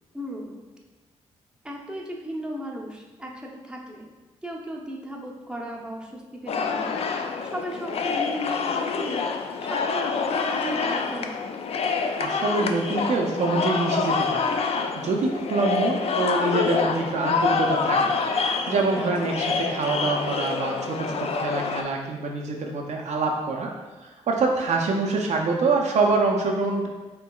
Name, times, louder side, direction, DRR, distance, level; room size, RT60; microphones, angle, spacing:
voice 1, 0.1-0.7 1.6-4.1 4.4-6.9 7.4-9.3 9.6-11.5 18.9-19.3, equal, 5° right, -1 dB, 0.7 m, -36 dB
sound 1, 6.5-21.8, left 5 dB, 55° left, 0.4 m, -26 dB
voice 2, 12.2-14.5 15.0-18.1 18.7-23.7 24.3-26.9, right 3 dB, 65° right, 1 dB, 0.5 m, -25 dB
4.4 x 2.9 x 2.3 m, 1.2 s
supercardioid pair, 55°, 13 cm